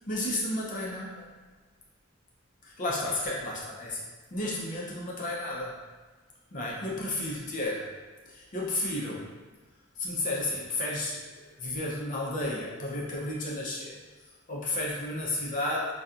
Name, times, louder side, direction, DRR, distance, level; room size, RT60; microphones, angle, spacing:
voice 1, 0.1-1.3 2.6-4.0 4.3-5.8 6.5-7.9 8.3-9.3 10.0-14.0 14.5-15.9, left 1 dB, 40° left, -5 dB, 0.6 m, -32 dB
2.7 x 2.3 x 2.4 m, 1.4 s
head